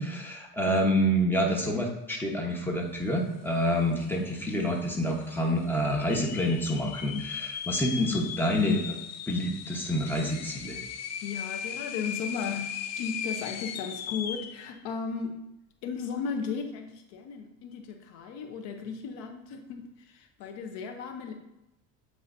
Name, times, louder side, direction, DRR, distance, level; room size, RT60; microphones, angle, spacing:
voice 1, 0.0-9.0 9.3-10.8, equal, 5° left, 0 dB, 1.2 m, -27 dB
sound 1, 3.7-3.8 4.0-4.6 5.1-5.2 5.9-14.6, left 8 dB, 40° left, 0.5 m, -38 dB
voice 2, 11.2-15.4 15.8-21.3, left 6 dB, 75° left, 5 dB, 1.0 m, -36 dB
8.2 x 4.8 x 2.7 m, 0.91 s
supercardioid pair, 105°, 43 cm